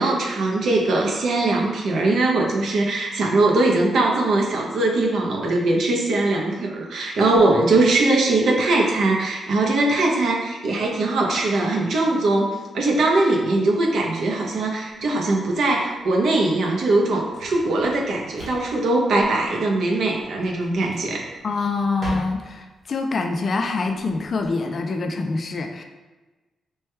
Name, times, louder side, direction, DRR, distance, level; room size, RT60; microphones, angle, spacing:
voice 1, 0.0-21.3, right 2 dB, 65° right, 0 dB, 0.6 m, -21 dB
Drawer open or close, 14.9-24.5, right 1 dB, 30° right, 1.0 m, -41 dB
voice 2, 21.4-25.8, left 3 dB, 40° left, 5 dB, 0.3 m, -25 dB
3.3 x 2.2 x 4.3 m, 1.2 s
wide cardioid pair, 160°, 0 cm